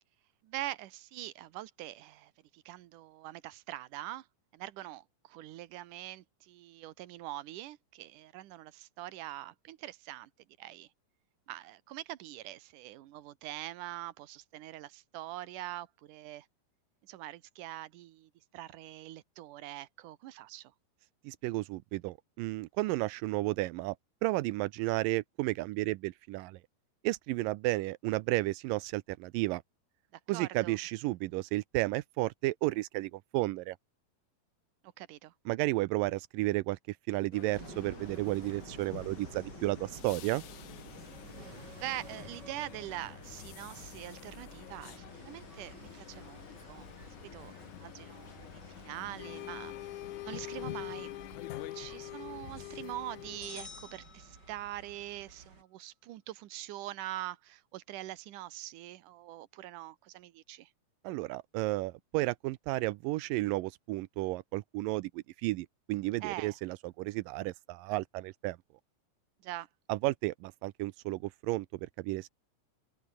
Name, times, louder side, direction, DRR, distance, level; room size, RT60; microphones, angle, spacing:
voice 1, 0.4-4.3 4.5-10.3 10.6-10.9 11.5-16.5 17.0-20.7 30.1-30.8 35.0-35.3 41.7-51.1 51.7-60.7 66.2-66.6 69.4-69.7, right 15 dB, 65° right, 2.2 m, -44 dB
voice 2, 21.2-24.0 24.2-26.6 27.0-29.6 30.3-33.8 35.5-40.4 61.0-68.6 69.9-72.3, right 19 dB, 85° right, 2.0 m, -33 dB
sound 1, 37.3-53.6, left 15 dB, 80° left, 1.7 m, -46 dB
sound 2, 37.5-55.6, right 3 dB, 25° right, 5.2 m, -52 dB
sound 3, 53.4-55.0, left 5 dB, 40° left, 1.4 m, -50 dB
omnidirectional pair, 4.7 m